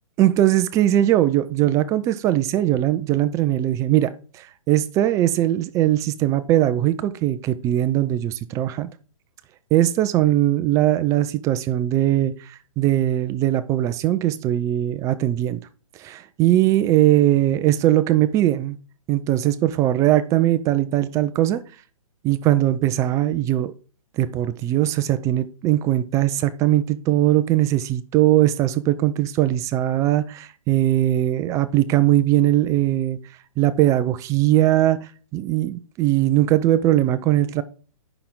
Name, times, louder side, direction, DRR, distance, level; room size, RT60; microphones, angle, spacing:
voice 1, 0.2-8.9 9.7-15.6 16.0-18.8 19.1-21.6 22.2-23.7 24.2-33.2 33.6-35.0 35.3-37.6, right 13 dB, 15° right, 0.4 m, -20 dB
9.6 x 5.9 x 3.7 m
hypercardioid pair, 140°, 18 cm